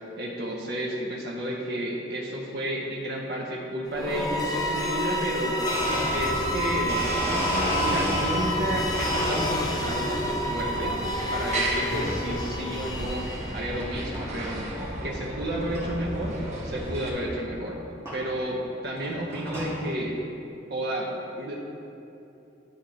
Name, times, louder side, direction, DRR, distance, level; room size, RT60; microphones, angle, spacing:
voice 1, 0.2-5.6 6.1-7.0 7.8-11.0 11.3-13.2 13.5-14.7 15.0-16.4 16.6-17.8 18.1-20.2 20.7-21.6, right 1 dB, 60° right, -3 dB, 0.7 m, -31 dB
sound 1, 3.9-13.8, left 1 dB, 20° left, 0.5 m, -29 dB
Domestic sounds home sounds, 5.7-8.6 8.9-10.0 10.4-10.9 11.9-12.2 12.8-12.9 13.8-13.9 14.1-14.5 14.9-15.0 15.2-15.3 15.7-15.8 17.2-17.3 18.1-18.2 18.8-19.8, equal, 15° right, 1.6 m, -31 dB
sound 2, 5.7-17.1, right 1 dB, 35° right, 1.1 m, -34 dB
9.9 x 4.3 x 3.9 m, 2.8 s
head